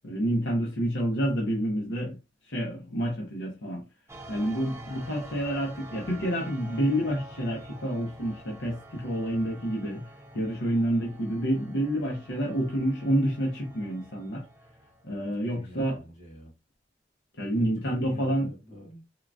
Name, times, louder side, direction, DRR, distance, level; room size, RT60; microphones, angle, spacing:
voice 1, 0.0-2.2 2.5-3.8 4.3-10.0 10.3-14.4 15.0-16.0 17.4-18.5, equal, 70° left, 0.8 m, -28 dB
sound 1, 4.1-15.3, right 1 dB, 15° right, 0.6 m, -47 dB
voice 2, 15.2-16.5 17.5-19.1, equal, 40° left, 1.8 m, -47 dB
3.7 x 2.3 x 2.3 m
head